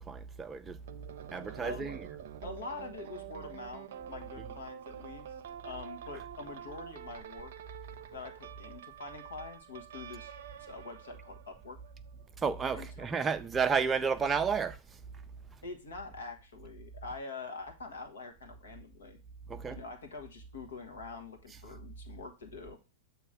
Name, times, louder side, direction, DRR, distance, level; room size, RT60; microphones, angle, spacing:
voice 1, 0.1-0.8 1.3-2.1 4.4-4.5 6.1-6.2 12.4-14.8 19.5-19.8, right 6 dB, 20° right, 0.5 m, -31 dB
sound 1, 0.9-12.3 14.1-14.4, right 10 dB, 65° right, 0.6 m, -47 dB
voice 2, 1.6-1.9 2.4-5.3 5.6-7.5 8.1-10.3 10.7-11.8 12.7-13.1 15.6-19.2 19.7-22.8, left 4 dB, 75° left, 1.3 m, -45 dB
7.5 x 2.9 x 4.8 m
hypercardioid pair, 105°, 0 cm